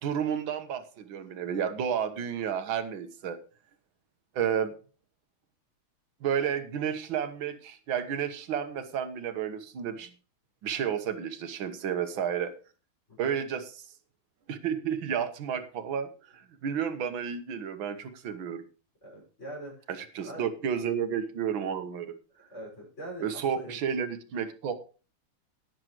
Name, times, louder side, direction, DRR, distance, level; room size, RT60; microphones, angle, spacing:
voice 1, 0.0-3.4 4.3-4.7 6.2-10.1 10.6-12.5 13.2-13.8 14.5-18.6 19.9-22.2 23.2-24.8, right 8 dB, 70° right, 9 dB, 1.9 m, -31 dB
voice 2, 19.0-19.9 20.2-20.5 22.5-23.8, right 1 dB, 30° left, -3 dB, 6.4 m, -43 dB
18.5 x 7.7 x 3.1 m, 0.35 s
omnidirectional pair, 2.3 m